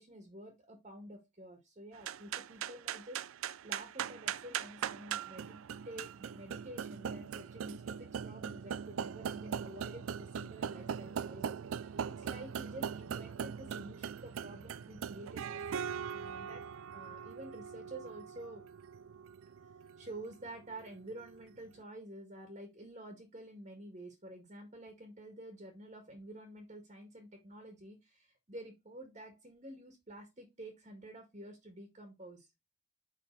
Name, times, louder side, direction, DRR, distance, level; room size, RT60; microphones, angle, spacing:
voice 1, 0.0-5.6 5.9-16.6 16.9-18.6 20.0-32.5, right 1 dB, 35° right, 4 dB, 1.7 m, -50 dB
sound 1, 2.0-21.5, right 7 dB, 70° right, 0.4 m, -41 dB
5.7 x 5.3 x 4.5 m, 0.22 s
head